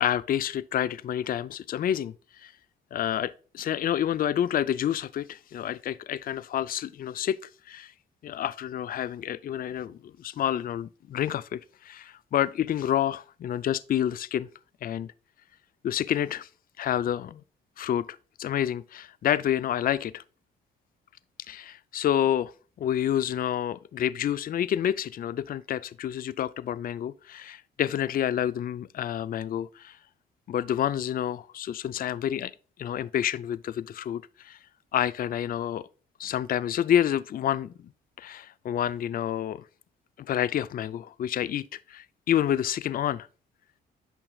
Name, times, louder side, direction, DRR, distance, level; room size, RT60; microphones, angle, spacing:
voice 1, 0.0-2.5 2.9-7.9 8.2-14.5 14.8-15.1 15.8-16.5 16.8-17.4 17.8-18.1 18.4-20.2 21.5-22.5 22.8-30.0 30.5-32.5 32.8-34.6 34.9-35.9 36.2-37.9 38.2-39.6 40.2-43.3, left 10 dB, 45° left, 0.4 m, -29 dB
8.9 x 6.0 x 2.3 m
cardioid pair, 90°, 20 cm